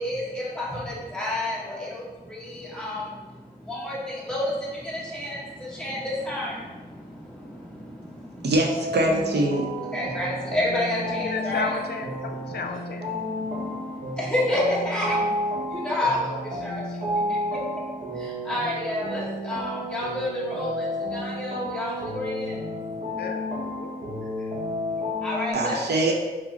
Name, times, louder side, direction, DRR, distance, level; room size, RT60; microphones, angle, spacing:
voice 1, 0.0-8.4 9.9-11.7 12.5-12.6 13.2-23.2 24.4-24.5 24.9-25.8 26.1-26.2, left 1 dB, 5° left, 1.2 m, -31 dB
voice 2, 8.4-9.7 25.5-26.1, right 1 dB, 80° right, 0.6 m, -23 dB
sound 1, 8.7-25.5, equal, 45° right, 0.7 m, -31 dB
voice 3, 11.1-13.1 23.2-23.9, left 4 dB, 70° left, 0.4 m, -33 dB
4.7 x 2.0 x 4.0 m
wide cardioid pair, 165°, 17 cm